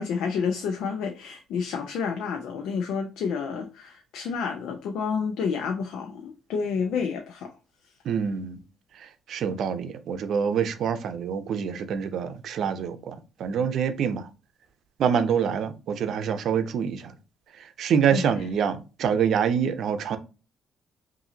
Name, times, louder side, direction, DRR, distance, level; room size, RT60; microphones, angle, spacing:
voice 1, 0.0-7.5 18.1-18.3, left 6 dB, 85° left, 0.6 m, -29 dB
voice 2, 8.0-8.6 8.9-14.3 15.0-17.1 17.5-20.2, right 7 dB, 70° right, 0.6 m, -26 dB
5.6 x 2.7 x 2.7 m
cardioid pair, 90°, 0 cm